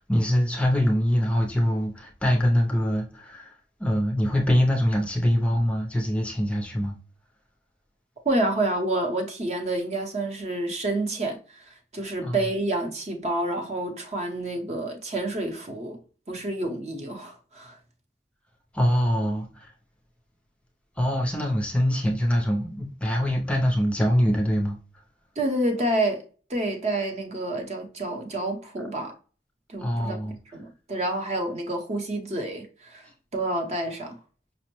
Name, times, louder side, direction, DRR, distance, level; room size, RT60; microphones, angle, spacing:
voice 1, 0.0-7.0 12.2-12.4 18.7-19.7 21.0-24.8 29.8-30.4 33.0-33.1, equal, 5° left, 0.4 m, -24 dB
voice 2, 8.2-16.0 16.3-17.8 25.4-26.2 26.5-29.1 29.7-30.2 30.5-34.2, right 1 dB, 40° right, 0.7 m, -28 dB
5.2 x 2.0 x 2.9 m
head